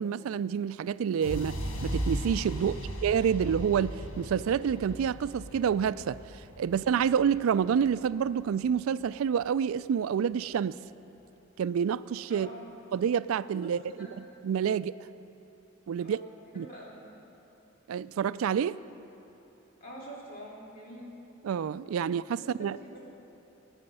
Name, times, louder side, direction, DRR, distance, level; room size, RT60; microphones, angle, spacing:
voice 1, 0.0-1.6 1.8-2.7 3.0-6.2 6.6-10.8 11.6-12.5 12.9-13.8 14.4-15.0 15.9-16.2 16.6-16.7 17.9-18.8 21.4-22.8, right 7 dB, 85° right, 17 dB, 0.3 m, -28 dB
sound 1, 1.2-9.1, equal, 75° left, 1.4 m, -37 dB
voice 2, 12.3-12.7 13.9-14.1 16.0-17.0 19.8-21.1 22.4-22.5 22.8-23.0, equal, 40° left, -5 dB, 3.0 m, -46 dB
21.0 x 8.9 x 5.5 m, 3.0 s
head